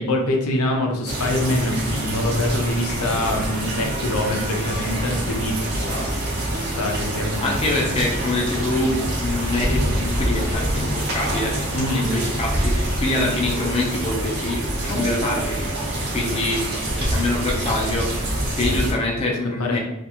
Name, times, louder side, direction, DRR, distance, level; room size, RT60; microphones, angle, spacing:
voice 1, 0.0-5.6 6.5-7.8 11.7-12.1 18.5-18.8 19.6-19.8, left 1 dB, 85° left, 2 dB, 0.5 m, -24 dB
sound 1, 1.1-18.9, right 1 dB, 50° right, 0.6 m, -25 dB
voice 2, 5.7-6.1 7.0-7.1 7.4-11.5 11.9-15.7 16.1-16.6 17.0-18.1 18.6-19.8, left 2 dB, 25° left, -2 dB, 0.5 m, -25 dB
2.5 x 2.3 x 2.8 m, 0.87 s
head